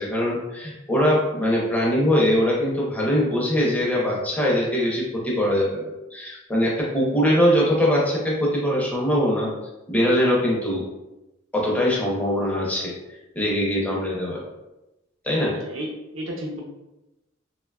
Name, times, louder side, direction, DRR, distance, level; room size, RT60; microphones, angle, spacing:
voice 1, 0.0-9.5 9.9-10.8 11.5-12.9 13.3-14.4 15.2-15.6, equal, 10° left, -4 dB, 0.6 m, -22 dB
voice 2, 15.5-15.9 16.1-16.6, right 1 dB, 75° right, -1 dB, 0.7 m, -32 dB
2.8 x 2.2 x 2.3 m, 0.97 s
head